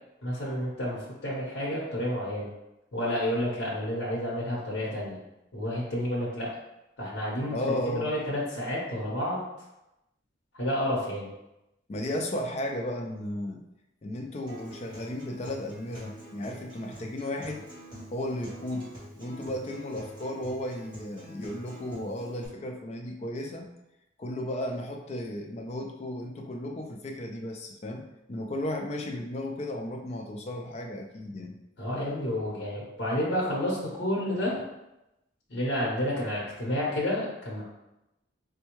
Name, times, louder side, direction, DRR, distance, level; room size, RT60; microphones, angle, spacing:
voice 1, 0.2-2.5 2.9-5.2 5.5-6.5 7.0-9.4 10.5-11.2 31.8-34.6 35.5-37.6, left 1 dB, 60° left, -5 dB, 0.9 m, -30 dB
voice 2, 7.5-8.1 11.9-13.6 14.0-17.7 18.1-18.9 19.2-23.7 24.2-31.5, left 1 dB, 35° left, 3 dB, 0.3 m, -34 dB
Acoustic guitar, 14.5-22.5, equal, 25° right, 1.2 m, -46 dB
4.2 x 2.2 x 3.0 m, 0.92 s
head